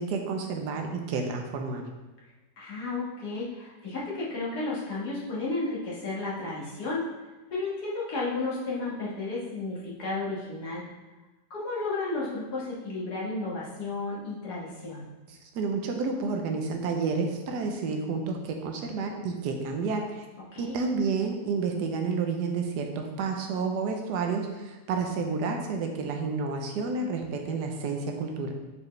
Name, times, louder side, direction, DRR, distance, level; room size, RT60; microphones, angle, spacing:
voice 1, 0.0-1.8 15.3-20.3 20.6-28.5, right 4 dB, 80° right, 3 dB, 1.4 m, -30 dB
voice 2, 2.6-7.0 7.5-10.8 11.5-15.0 20.5-20.7, left 3 dB, 70° left, -6 dB, 2.2 m, -33 dB
7.3 x 4.6 x 3.2 m, 1.1 s
omnidirectional pair, 1.8 m